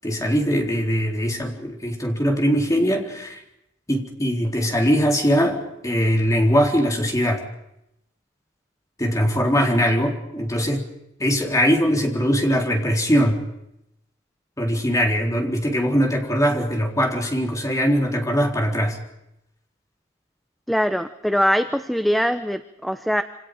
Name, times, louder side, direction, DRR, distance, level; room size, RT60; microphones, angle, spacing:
voice 1, 0.0-3.4 3.9-7.4 9.0-10.9 11.2-13.4 14.6-19.0, equal, 15° left, 1 dB, 4.0 m, -21 dB
voice 2, 20.7-23.2, equal, ahead, 9 dB, 0.8 m, -22 dB
27.5 x 26.5 x 5.0 m, 0.83 s
head